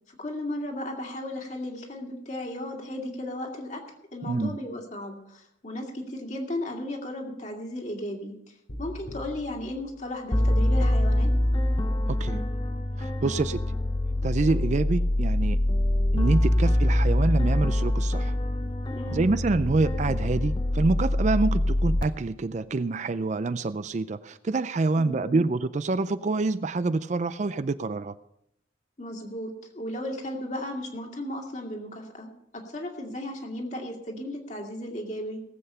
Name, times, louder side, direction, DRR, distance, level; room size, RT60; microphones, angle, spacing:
voice 1, 0.1-3.8 4.1-11.3 18.9-19.3 25.0-25.4 29.0-32.3 32.5-35.4, left 1 dB, 40° left, 1 dB, 2.4 m, -35 dB
voice 2, 4.3-4.6 12.1-12.4 13.0-13.7 14.2-15.6 16.1-18.4 19.1-28.1, right 3 dB, 40° right, 14 dB, 0.4 m, -26 dB
sound 1, 8.7-10.8, equal, 80° left, 2.3 m, -43 dB
sound 2, 10.3-22.0, left 1 dB, 25° left, 0.7 m, -24 dB
18.5 x 7.9 x 5.6 m, 0.78 s
head